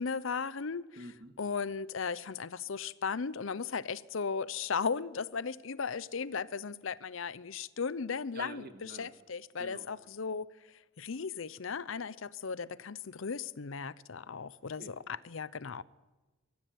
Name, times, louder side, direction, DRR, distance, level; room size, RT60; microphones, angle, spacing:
voice 1, 0.0-0.9 1.4-8.6 9.0-10.5 11.0-14.9 15.2-15.8, left 5 dB, 65° left, 0.6 m, -36 dB
voice 2, 1.0-1.4 8.3-9.1 9.5-9.9 14.7-14.9, right 2 dB, 45° right, 1.7 m, -47 dB
23.0 x 14.5 x 9.4 m
head